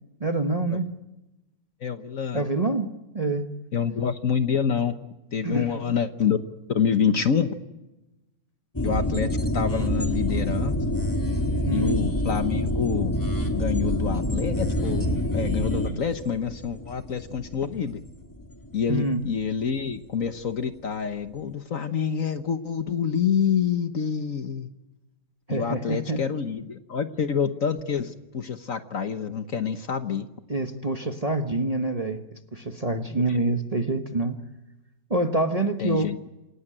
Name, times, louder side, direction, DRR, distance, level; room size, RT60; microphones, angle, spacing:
voice 1, 0.2-0.9 2.3-2.9 3.1-3.5 5.4-5.9 11.7-12.0 18.9-19.2 25.5-26.3 30.5-34.4 35.1-36.1, right 2 dB, 25° right, 6 dB, 1.1 m, -26 dB
voice 2, 1.8-2.5 3.7-4.9 5.3-6.4 6.7-7.5 8.8-10.8 11.7-13.1 13.5-18.0 18.7-24.7 25.5-30.3 33.1-33.2 35.8-36.2, left 7 dB, 50° left, 9 dB, 1.3 m, -27 dB
sound 1, 8.7-19.7 19.9-20.0, left 1 dB, 10° left, 2.0 m, -27 dB
28.0 x 17.5 x 8.8 m, 1.0 s
omnidirectional pair, 2.0 m